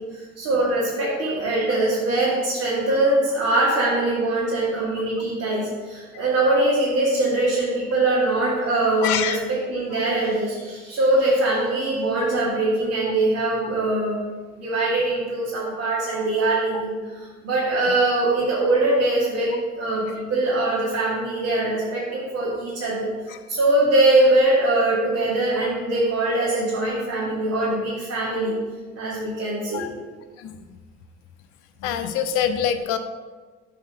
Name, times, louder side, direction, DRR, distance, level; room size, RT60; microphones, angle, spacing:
voice 1, 0.1-14.2 14.6-23.1 23.5-28.6 29.0-29.9, right 2 dB, 55° right, -7 dB, 2.4 m, -22 dB
voice 2, 9.0-9.4 12.2-12.3 16.7-16.8 23.3-23.4 29.7-29.9 30.4-30.5 31.8-33.0, left 9 dB, 70° left, 9 dB, 0.7 m, -25 dB
7.2 x 4.2 x 6.5 m, 1.4 s
hypercardioid pair, 50°, 32 cm